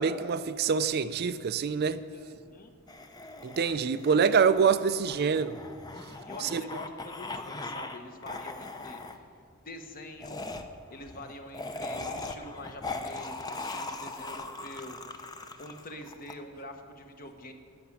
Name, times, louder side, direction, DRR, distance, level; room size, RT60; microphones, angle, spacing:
voice 1, 0.0-2.0 3.4-5.5 6.4-6.6, right 6 dB, 45° right, 0.4 m, -25 dB
voice 2, 2.0-2.7 4.6-4.8 5.2-5.4 6.3-9.0 9.6-10.4 10.9-15.3 15.6-17.5, left 1 dB, 40° left, 1.1 m, -45 dB
sound 1, 2.9-8.0 8.2-9.2 10.2-16.3, left 2 dB, 15° left, 0.6 m, -40 dB
14.0 x 6.0 x 9.9 m
head